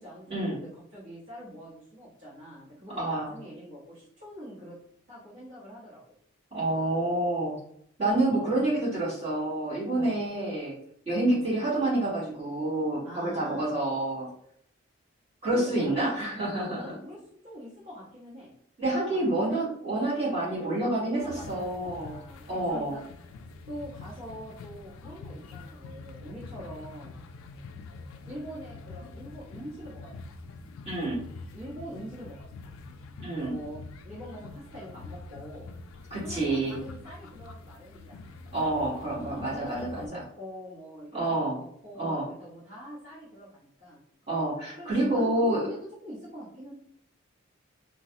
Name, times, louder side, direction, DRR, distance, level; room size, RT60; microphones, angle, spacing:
voice 1, 0.0-4.8 5.1-6.0 8.3-8.7 9.9-10.1 11.2-11.4 13.0-13.7 15.5-17.2 17.4-18.5 18.8-19.4 20.4-23.3 23.7-27.2 28.3-30.4 31.5-32.4 32.6-32.7 33.3-33.8 34.0-35.7 36.2-38.4 39.2-44.0 44.8-46.7, equal, 50° right, -10 dB, 1.2 m, -43 dB
voice 2, 3.0-3.3 6.5-7.6 8.0-10.7 11.0-14.3 15.4-16.9 18.8-21.2 21.5-22.2 22.5-23.0 30.8-31.2 33.2-33.5 36.1-36.8 38.5-40.2 41.1-41.6 42.0-42.2 44.3-45.6, right 2 dB, 30° right, -10 dB, 1.5 m, -28 dB
sound 1, 21.2-40.1, left 3 dB, 75° left, 0.3 m, -45 dB
3.0 x 2.3 x 2.8 m, 0.67 s
head